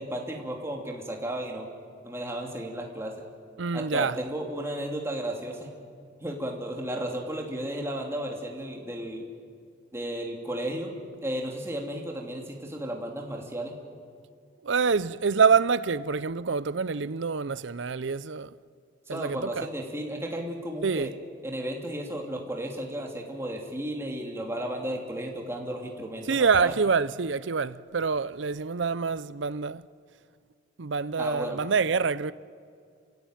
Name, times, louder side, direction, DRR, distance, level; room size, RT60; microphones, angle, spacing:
voice 1, 0.0-1.7 2.0-3.1 3.7-5.7 6.2-9.3 9.9-10.9 11.2-13.8 19.1-21.1 21.4-26.7 31.2-31.6, right 1 dB, 15° right, 2.7 m, -34 dB
voice 2, 3.6-4.2 14.6-18.5 19.1-19.7 20.8-21.1 26.3-29.9 30.8-32.3, right 5 dB, 70° right, 0.6 m, -26 dB
28.5 x 16.5 x 9.1 m
head